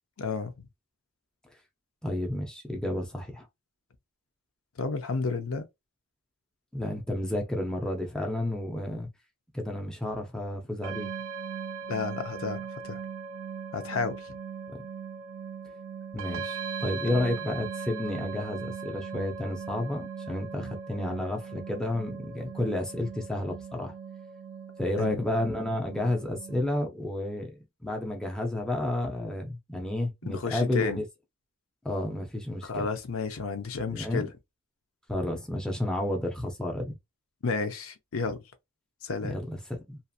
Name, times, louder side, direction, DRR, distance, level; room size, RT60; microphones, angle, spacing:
voice 1, 0.2-0.5 4.8-5.7 11.9-13.0 13.7-14.4 25.0-25.2 30.2-31.0 32.6-34.3 37.4-38.4 39.0-39.3, left 4 dB, 70° left, 0.6 m, -32 dB
voice 2, 2.0-3.5 6.7-9.1 9.5-11.1 14.7-14.8 16.1-23.9 24.8-31.0 31.8-32.9 33.9-34.3 35.1-36.9 39.2-40.0, left 1 dB, 5° left, 0.6 m, -31 dB
sound 1, 10.8-26.6, right 6 dB, 60° right, 0.4 m, -39 dB
2.8 x 2.5 x 2.4 m
head